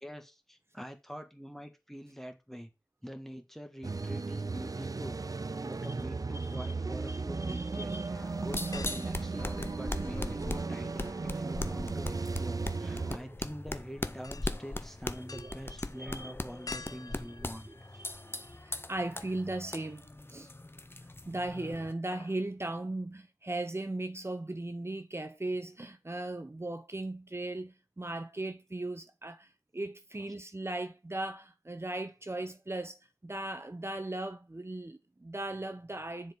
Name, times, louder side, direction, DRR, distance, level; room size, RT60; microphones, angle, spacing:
voice 1, 0.0-2.7 3.0-5.2 5.6-17.7, equal, 5° left, 1.6 m, -45 dB
sound 1, 3.8-13.2, right 3 dB, 55° right, 0.4 m, -36 dB
voice 2, 6.4-6.8 7.0-8.1 12.5-12.9 15.1-16.3 17.4-20.5 21.3-36.3, right 2 dB, 35° right, 0.9 m, -38 dB
sound 2, 8.1-21.9, left 2 dB, 30° left, 0.8 m, -40 dB
sound 3, 8.7-10.4 10.7-18.6 19.0-19.1 20.6-21.2 21.5-21.7 21.9-22.5 22.8-22.9, left 4 dB, 55° left, 0.4 m, -50 dB
7.3 x 4.9 x 5.3 m
wide cardioid pair, 45°, 7 cm